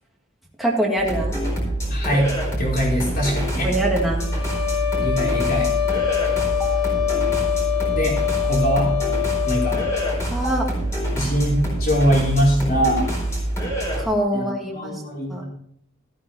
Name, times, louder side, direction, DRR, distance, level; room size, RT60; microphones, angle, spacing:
voice 1, 0.6-1.4 3.6-4.2 10.3-10.7 14.0-15.0 15.3-15.4, right 1 dB, ahead, -2 dB, 1.9 m, -23 dB
sound 1, 1.0-14.0, right 1 dB, 15° left, 4.4 m, -25 dB
voice 2, 1.9-3.7 5.0-5.7 7.9-8.9 9.4-9.8 11.1-13.1 14.3-14.5 14.7-15.5, equal, 45° left, -2 dB, 4.7 m, -22 dB
sound 2, 4.2-10.2, left 15 dB, 90° left, 5.4 m, -24 dB
13.5 x 9.2 x 4.2 m, 0.67 s
head